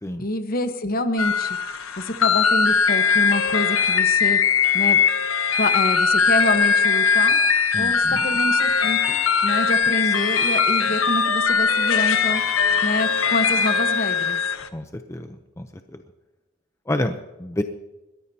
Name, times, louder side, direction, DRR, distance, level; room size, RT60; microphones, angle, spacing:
voice 1, 0.2-1.6 2.0-4.4 4.7-5.0 5.6-7.4 7.7-12.4 12.8-14.4, left 1 dB, 45° left, 9 dB, 1.2 m, -27 dB
sound 1, 1.2-14.7, left 6 dB, 90° left, 1.0 m, -20 dB
voice 2, 7.7-8.3 10.0-10.1 14.7-15.7 15.9-16.0 16.9-17.6, left 1 dB, 15° left, 7 dB, 0.7 m, -29 dB
21.5 x 15.0 x 2.9 m, 1.0 s
head